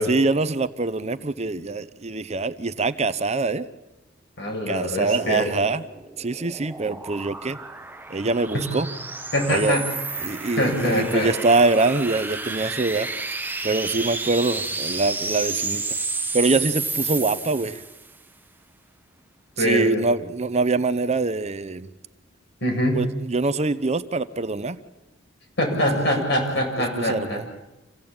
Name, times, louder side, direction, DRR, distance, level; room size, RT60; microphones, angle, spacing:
voice 1, 0.1-3.7 4.7-5.8 6.2-7.6 8.1-8.9 9.5-9.8 10.2-13.1 13.6-15.8 16.3-17.8 19.6-21.9 22.9-24.8 27.0-27.4, right 3 dB, 35° right, 13 dB, 0.8 m, -24 dB
voice 2, 4.4-5.5 8.5-8.6 9.3-9.8 10.5-11.3 19.6-20.0 22.6-23.0 25.6-27.4, equal, 60° left, 1 dB, 7.4 m, -23 dB
sound 1, 5.9-18.1, right 3 dB, 10° right, 1.1 m, -31 dB
27.5 x 16.5 x 8.8 m, 1.0 s
head